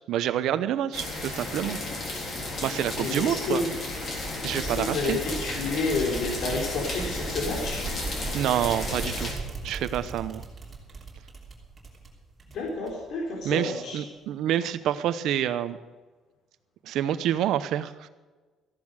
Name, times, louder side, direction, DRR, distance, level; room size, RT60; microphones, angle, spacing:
voice 1, 0.1-1.8 2.6-3.6 4.4-5.2 8.3-9.3 9.6-10.4 13.4-15.8 16.8-18.1, right 11 dB, 70° right, 12 dB, 0.8 m, -27 dB
sound 1, 0.9-9.3, left 2 dB, 40° left, 3.7 m, -34 dB
voice 2, 3.0-3.8 4.5-7.9 12.5-14.0, left 3 dB, 60° left, -1 dB, 3.8 m, -30 dB
sound 2, 3.9-13.2, right 3 dB, 20° right, 3.1 m, -38 dB
14.5 x 11.0 x 6.4 m, 1.3 s
cardioid pair, 150°, 0 cm